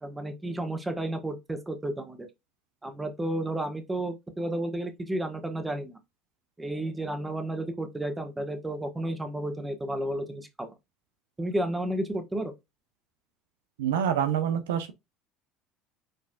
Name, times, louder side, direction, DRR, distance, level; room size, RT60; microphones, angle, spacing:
voice 1, 0.0-2.2 2.8-6.0 6.6-10.7 11.4-12.5, right 1 dB, 15° right, 1.3 m, -32 dB
voice 2, 13.8-14.9, right 9 dB, 80° right, 0.6 m, -26 dB
5.1 x 4.1 x 2.3 m
hypercardioid pair, 75°, 0 cm